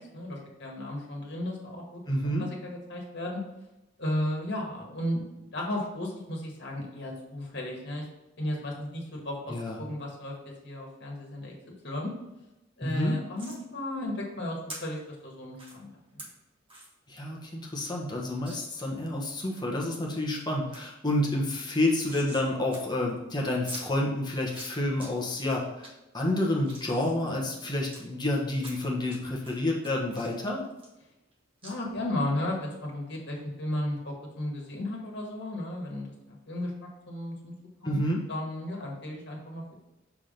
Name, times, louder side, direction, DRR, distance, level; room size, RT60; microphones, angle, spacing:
voice 1, 0.1-2.0 2.4-3.4 4.0-8.0 8.4-10.3 10.6-12.1 12.8-16.2 31.6-36.7 37.1-37.5 37.8-38.0 38.3-39.8, left 1 dB, 60° left, -1 dB, 1.7 m, -34 dB
voice 2, 2.1-2.5 9.5-9.8 12.8-13.2 17.1-25.9 26.1-30.6 37.8-38.2, left 1 dB, 20° left, -2 dB, 1.2 m, -29 dB
sound 1, 13.4-13.6 14.7-14.8 15.5-15.7 16.2-16.3 16.7-16.9 17.3-17.4 17.6-17.7 18.4-18.6 19.1-19.6 20.1-20.4 20.7-20.8 21.1-22.5 22.7-22.8 23.1-23.2 23.7-23.8 24.4-25.1 25.5-25.9 26.4-28.0 28.6-29.2 29.4-31.3 31.6-31.7, right 1 dB, 25° right, 1.5 m, -45 dB
6.0 x 3.6 x 5.1 m, 0.98 s
head